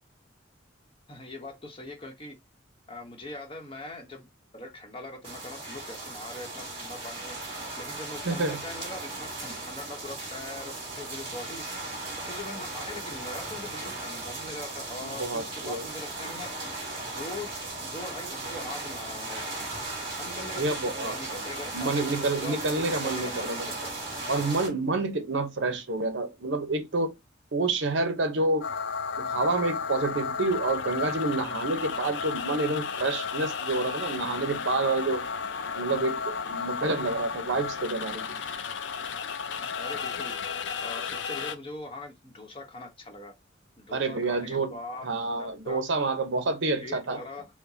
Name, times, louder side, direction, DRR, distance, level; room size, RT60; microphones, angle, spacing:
voice 1, 1.1-2.4 2.9-4.3 4.5-7.4 7.8-11.6 12.2-16.5 17.0-17.5 17.8-19.7 20.2-23.9 39.6-40.3 40.8-43.3 43.8-45.1 45.4-45.8 46.8-47.5, left 2 dB, 30° left, 0.9 m, -41 dB
sound 1, 5.2-24.7, right 2 dB, 30° right, 2.5 m, -37 dB
voice 2, 8.2-8.6 15.0-15.9 20.6-21.4 21.7-23.7 24.3-27.1 27.5-28.7 29.2-35.3 35.7-38.4 43.9-44.7 45.0-47.2, right 3 dB, 70° right, 0.8 m, -28 dB
sound 2, 28.6-41.6, left 6 dB, 65° left, 0.4 m, -33 dB
4.7 x 2.1 x 2.7 m
head